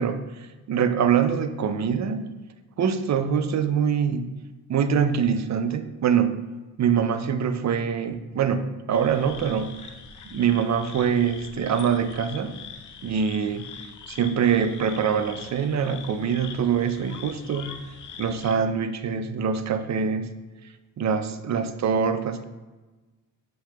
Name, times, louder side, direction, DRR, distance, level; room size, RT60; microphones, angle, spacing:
voice 1, 0.0-2.3 2.8-4.3 4.7-6.4 6.8-9.9 10.3-12.6 13.0-13.7 14.1-17.7 18.2-20.3 21.0-22.4, right 7 dB, 35° right, 10 dB, 0.5 m, -24 dB
sound 1, 8.9-18.6, left 6 dB, 40° left, 0.5 m, -43 dB
7.4 x 2.9 x 2.3 m, 1.2 s
supercardioid pair, 50°, 49 cm